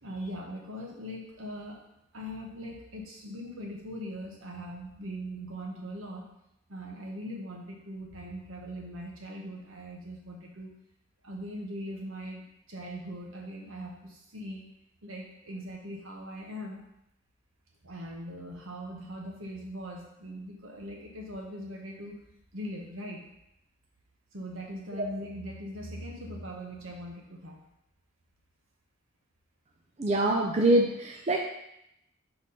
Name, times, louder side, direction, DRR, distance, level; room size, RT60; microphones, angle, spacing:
voice 1, 0.0-1.8 2.1-6.3 6.7-10.7 11.2-14.6 15.0-16.8 17.8-22.2 22.5-23.2 24.3-27.6, equal, 70° right, 0 dB, 1.3 m, -40 dB
voice 2, 30.0-31.4, right 1 dB, 30° right, 0 dB, 0.5 m, -24 dB
4.7 x 4.3 x 5.6 m, 0.80 s
head